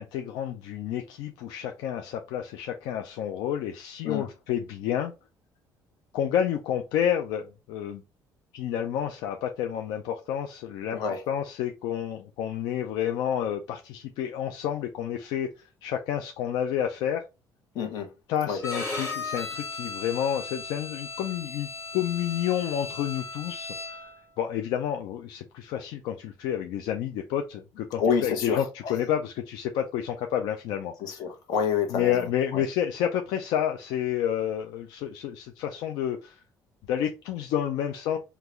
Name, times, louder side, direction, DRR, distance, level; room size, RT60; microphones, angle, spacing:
voice 1, 0.0-5.1 6.1-8.0 8.5-11.0 11.3-17.2 18.3-24.1 24.4-30.9 31.9-36.4 36.9-38.2, left 10 dB, 90° left, 0.4 m, -30 dB
voice 2, 17.7-18.1 18.5-18.6 28.0-28.6 31.0-32.2 32.5-32.6, left 6 dB, 65° left, 0.9 m, -27 dB
Bowed string instrument, 18.6-24.2, left 3 dB, 35° left, 1.3 m, -36 dB
3.7 x 2.2 x 3.0 m
cardioid pair, 150°, 7 cm